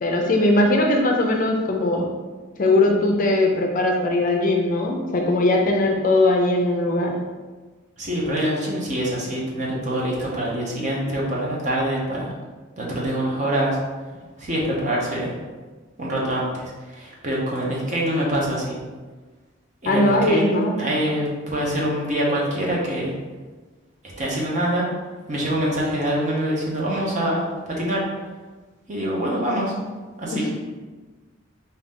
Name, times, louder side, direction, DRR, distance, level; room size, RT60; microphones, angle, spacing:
voice 1, 0.0-2.1 2.6-7.1 19.9-20.8 30.3-30.4, left 2 dB, 40° left, 1 dB, 0.4 m, -20 dB
voice 2, 8.0-12.3 12.8-13.8 14.4-15.3 16.0-18.8 19.8-20.5 20.8-23.2 24.2-24.9 25.3-28.0 28.9-29.7 30.2-30.5, right 1 dB, 35° right, -4 dB, 0.9 m, -25 dB
3.8 x 2.7 x 3.6 m, 1.3 s
head